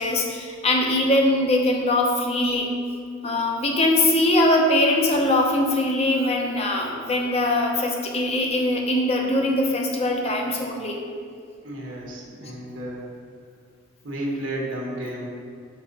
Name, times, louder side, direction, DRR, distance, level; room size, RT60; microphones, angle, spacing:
voice 1, 0.0-2.7 3.2-11.0, left 1 dB, 30° left, 1 dB, 0.8 m, -22 dB
voice 2, 11.6-13.1 14.0-15.3, right 1 dB, 70° right, -2 dB, 1.4 m, -32 dB
6.8 x 4.7 x 4.1 m, 2.2 s
head